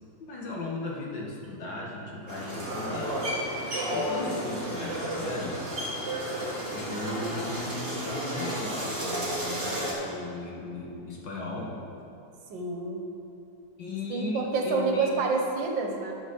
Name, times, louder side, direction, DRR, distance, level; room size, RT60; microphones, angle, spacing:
voice 1, 0.2-3.2 3.9-5.6 6.7-11.7 13.8-15.1, left 2 dB, 75° left, -3 dB, 2.3 m, -36 dB
sound 1, 2.3-9.9, equal, 30° right, 2.1 m, -32 dB
voice 2, 12.5-13.0 14.1-16.1, right 4 dB, 85° right, 2 dB, 1.8 m, -28 dB
12.0 x 6.2 x 5.4 m, 2.7 s
omnidirectional pair, 2.0 m